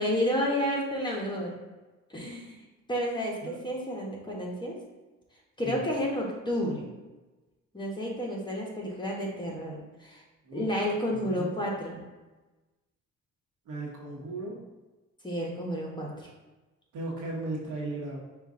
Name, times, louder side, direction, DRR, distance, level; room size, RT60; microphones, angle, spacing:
voice 1, 0.0-1.5 2.1-2.6 2.9-4.8 5.6-6.9 7.7-10.2 10.5-12.0 15.2-16.3, equal, 15° left, -2 dB, 1.1 m, -31 dB
voice 2, 13.7-14.5 16.9-18.2, right 2 dB, 75° right, -2 dB, 1.2 m, -36 dB
5.0 x 2.5 x 3.7 m, 1.2 s
cardioid pair, 90°, 30 cm